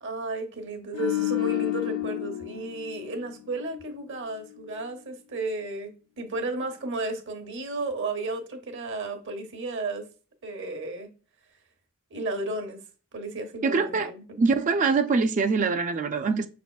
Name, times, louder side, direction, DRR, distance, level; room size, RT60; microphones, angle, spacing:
voice 1, 0.0-10.1 10.4-11.1 12.1-12.8 13.1-14.4, right 2 dB, 60° right, 0.9 m, -33 dB
sound 1, 0.9-4.2 4.5-4.8, left 15 dB, 70° left, 0.5 m, -31 dB
voice 2, 13.6-14.1 14.4-16.5, right 4 dB, 35° right, 0.3 m, -24 dB
5.9 x 3.6 x 2.3 m
head